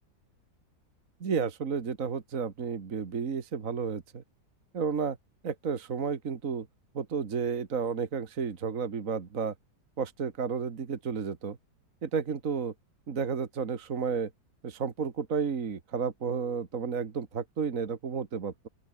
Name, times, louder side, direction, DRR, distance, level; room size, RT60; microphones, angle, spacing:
voice 1, 1.2-4.2 4.7-5.2 5.4-6.7 6.9-9.5 10.0-11.6 12.0-12.7 13.1-14.3 14.6-18.7, right 6 dB, 55° right, 2.0 m, -32 dB
open air
omnidirectional pair, 1.8 m